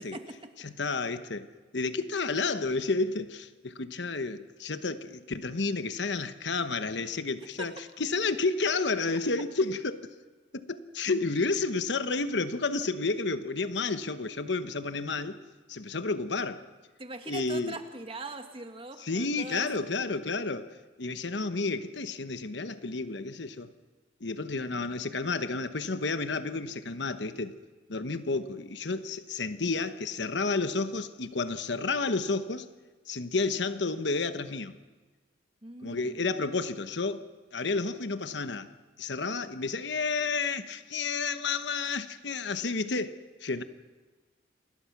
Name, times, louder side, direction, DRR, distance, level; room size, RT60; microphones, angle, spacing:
voice 1, 0.0-0.5 7.6-7.7 17.0-19.7 35.6-36.2, right 2 dB, 30° right, 1.7 m, -41 dB
voice 2, 0.6-1.5 1.7-10.1 10.5-15.4 15.7-16.6 17.3-17.8 19.0-23.7 24.2-27.5 27.9-32.7 33.1-34.8 35.8-37.3 37.5-38.7 39.0-43.6, left 3 dB, 65° left, 1.1 m, -31 dB
28.0 x 21.0 x 6.0 m
head